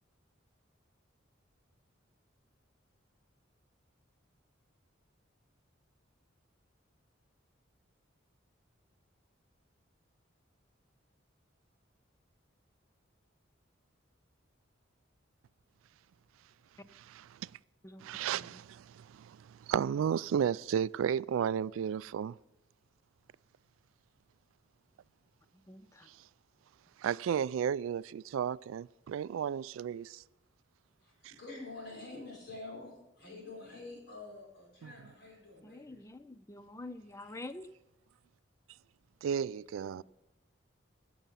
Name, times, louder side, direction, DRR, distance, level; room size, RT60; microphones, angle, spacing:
voice 1, 16.9-17.5 18.0-22.3 27.0-30.2 31.2-31.3 34.8-34.9 39.2-40.0, right 8 dB, 90° right, 0.3 m, -33 dB
voice 2, 25.7-26.1 35.6-37.7 40.0-40.1, left 2 dB, 15° left, 0.5 m, -47 dB
voice 3, 31.0-36.0, left 2 dB, 55° left, 5.0 m, -47 dB
16.5 x 7.0 x 5.6 m
head